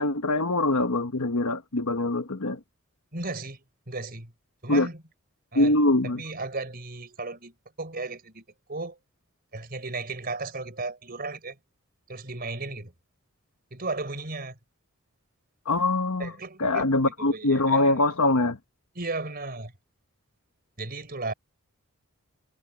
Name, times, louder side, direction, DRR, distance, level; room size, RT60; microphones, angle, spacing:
voice 1, 0.0-2.6 4.7-4.9 5.5-6.2 15.7-16.3 16.6-18.6, left 2 dB, 75° left, 1.2 m, -23 dB
voice 2, 3.1-4.3 4.6-5.0 5.5-5.8 6.0-9.0 9.5-11.6 12.1-12.9 13.7-14.6 16.2-16.9 17.2-18.0 18.9-19.7 20.8-21.3, right 3 dB, 45° right, 4.3 m, -35 dB
head